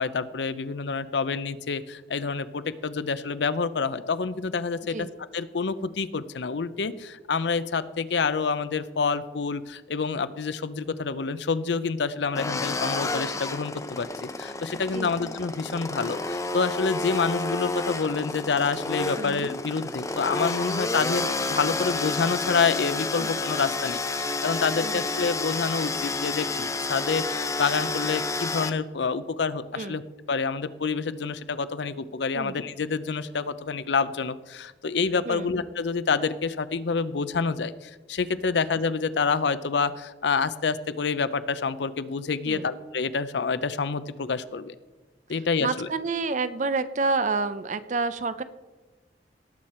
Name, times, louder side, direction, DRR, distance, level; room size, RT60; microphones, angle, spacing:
voice 1, 0.0-5.0 5.3-30.0 30.3-44.7 45.3-45.9, left 5 dB, 75° left, 15 dB, 0.6 m, -28 dB
sound 1, 12.3-28.7, left 3 dB, 20° left, 0.6 m, -30 dB
voice 2, 14.7-15.1 19.2-19.5 23.2-23.3 24.8-25.0 29.7-30.0 32.3-32.6 35.3-35.5 42.5-42.7 45.6-48.4, right 3 dB, 45° right, 13 dB, 0.6 m, -29 dB
18.0 x 7.4 x 4.3 m, 1.2 s
head